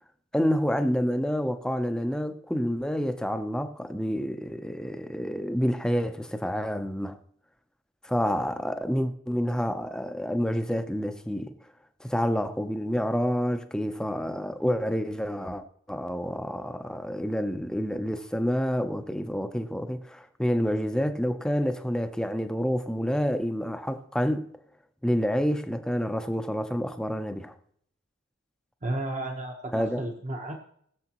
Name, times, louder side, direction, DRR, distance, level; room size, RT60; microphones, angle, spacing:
voice 1, 0.3-7.2 8.0-11.5 12.0-24.5 25.0-27.5 29.7-30.0, equal, 5° left, 0.6 m, -28 dB
voice 2, 28.8-30.6, right 1 dB, 35° right, 1.0 m, -33 dB
20.0 x 7.0 x 3.0 m
head